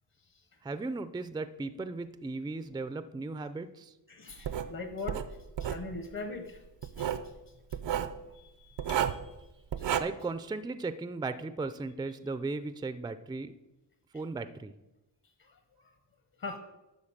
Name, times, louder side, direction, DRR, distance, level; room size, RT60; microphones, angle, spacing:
voice 1, 0.6-3.9 10.0-13.5 14.1-14.7, right 3 dB, 10° right, 13 dB, 0.4 m, -36 dB
voice 2, 4.1-5.2 5.6-7.1 8.3-8.9 9.7-9.9 15.4-15.6 16.4-16.6, left 3 dB, 50° left, 5 dB, 1.2 m, -41 dB
Writing, 4.4-4.7 5.1-5.8 6.8-7.3 7.7-8.1 8.8-9.3 9.7-10.0, right 9 dB, 80° right, 0.7 m, -31 dB
sound 1, 8.9-10.0, left 5 dB, 70° left, 1.3 m, -54 dB
11.5 x 4.1 x 7.2 m, 0.99 s
wide cardioid pair, 110°, 43 cm